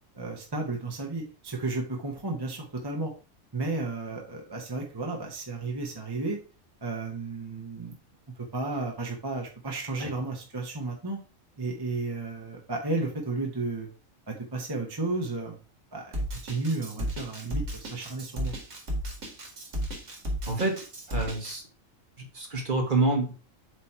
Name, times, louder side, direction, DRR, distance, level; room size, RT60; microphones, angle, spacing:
voice 1, 0.1-3.1 3.5-6.4 6.8-7.9 8.4-11.2 11.6-13.9 14.3-15.6 15.9-16.1 16.4-18.6, right 3 dB, 20° right, 0 dB, 1.0 m, -33 dB
Drum kit, 16.1-21.6, equal, 65° right, 2.3 m, -33 dB
voice 2, 20.5-21.6 22.2-23.3, right 2 dB, 40° right, 3 dB, 1.4 m, -28 dB
7.6 x 3.2 x 4.3 m, 0.34 s
omnidirectional pair, 1.4 m